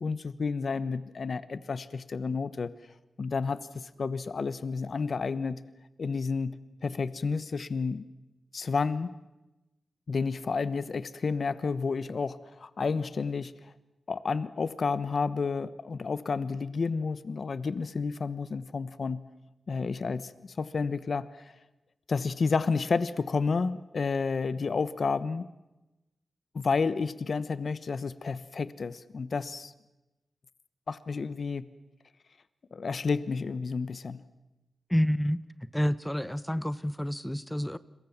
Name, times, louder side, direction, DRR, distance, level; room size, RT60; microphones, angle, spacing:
voice 1, 0.0-2.7 3.2-5.6 6.0-6.6 6.8-8.0 8.5-9.1 10.1-13.7 14.1-19.2 19.7-21.5 22.1-25.5 26.5-29.7 30.9-31.6 32.7-34.2, left 4 dB, 65° left, 15 dB, 1.1 m, -31 dB
voice 2, 34.9-35.5 35.7-37.8, equal, 5° left, 16 dB, 1.0 m, -28 dB
29.5 x 23.0 x 7.3 m, 1.0 s
cardioid pair, 60°, 0 cm